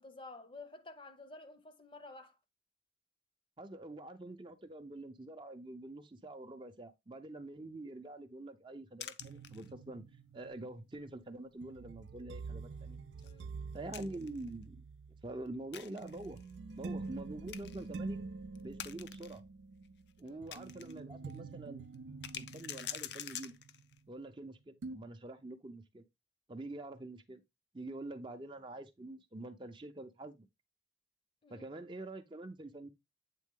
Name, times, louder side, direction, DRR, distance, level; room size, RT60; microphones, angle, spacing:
voice 1, 0.0-2.4 13.2-13.5 20.2-20.4 31.4-31.7, left 2 dB, 30° left, 0.7 m, -51 dB
voice 2, 3.6-10.0 10.3-13.0 13.7-14.8 15.2-16.4 16.7-18.2 18.6-19.4 20.2-21.8 22.3-23.5 24.1-26.0 26.5-27.4 27.7-30.5 31.5-32.9, right 2 dB, 25° right, 0.6 m, -46 dB
sound 1, 9.0-10.0 10.4-10.5 11.0-11.2 11.5-11.6 13.2-14.5 15.7-16.5 17.1-17.2 17.5-17.9 18.6-19.4 19.9-21.0 21.3-21.4 21.9-24.0, left 10 dB, 75° left, 0.5 m, -46 dB
sound 2, 9.2-24.4 24.8-25.0, right 4 dB, 80° right, 0.4 m, -47 dB
8.4 x 3.6 x 3.6 m
head